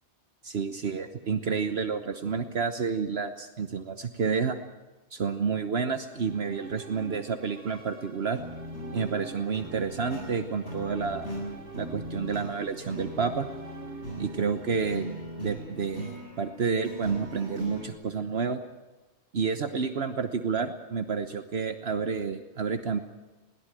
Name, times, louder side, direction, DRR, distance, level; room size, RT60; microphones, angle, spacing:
voice 1, 0.4-4.6 5.1-8.4 8.9-11.3 11.7-13.5 14.2-15.1 15.4-18.6 19.3-23.0, right 5 dB, 65° right, 9 dB, 1.3 m, -30 dB
sound 1, 5.9-16.1, right 3 dB, 90° right, 3.2 m, -46 dB
sound 2, 8.3-17.9, equal, 85° left, 8.2 m, -39 dB
21.5 x 17.0 x 9.0 m, 1.2 s
omnidirectional pair, 1.2 m